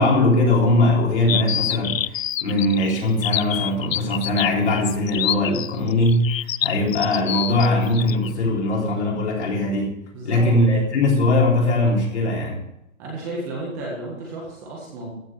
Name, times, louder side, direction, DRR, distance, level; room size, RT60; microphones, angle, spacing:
voice 1, 0.0-9.9 10.2-12.6, left 2 dB, 55° left, -2 dB, 3.9 m, -20 dB
sound 1, 1.3-8.3, left 11 dB, 75° left, 0.5 m, -26 dB
voice 2, 10.1-10.5 13.0-15.1, right 2 dB, 15° right, -3 dB, 1.7 m, -32 dB
14.5 x 5.1 x 6.6 m, 0.84 s
hypercardioid pair, 175°, 41 cm